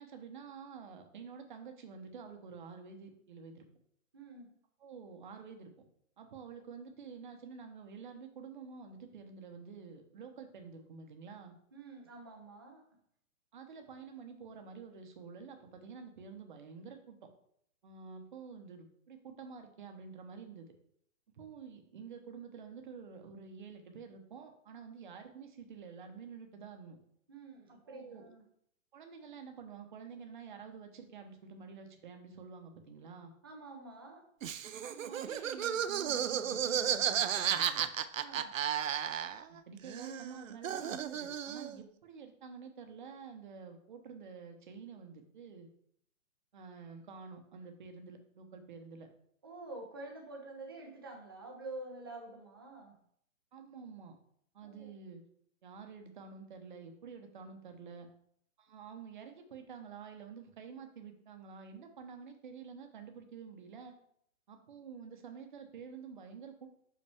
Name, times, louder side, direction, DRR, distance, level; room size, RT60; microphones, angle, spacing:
voice 1, 0.0-3.6 4.8-5.7 6.2-11.5 13.5-17.3 17.8-20.7 21.4-27.0 27.9-28.3 28.9-33.3 34.8-37.9 39.5-45.7 46.5-49.1 53.5-54.2 54.5-55.2 55.6-58.1 58.6-63.9 64.5-66.7, right 5 dB, 35° right, 5 dB, 0.9 m, -49 dB
voice 2, 4.1-4.5 11.7-12.9 27.3-28.4 33.4-34.3 38.2-38.5 49.4-53.0 54.6-54.9, right 2 dB, 20° right, 1 dB, 0.6 m, -48 dB
Laughter, 34.4-39.6 39.8-41.8, right 9 dB, 70° right, 0.6 m, -34 dB
5.8 x 5.4 x 3.5 m, 0.68 s
hypercardioid pair, 170°, 41 cm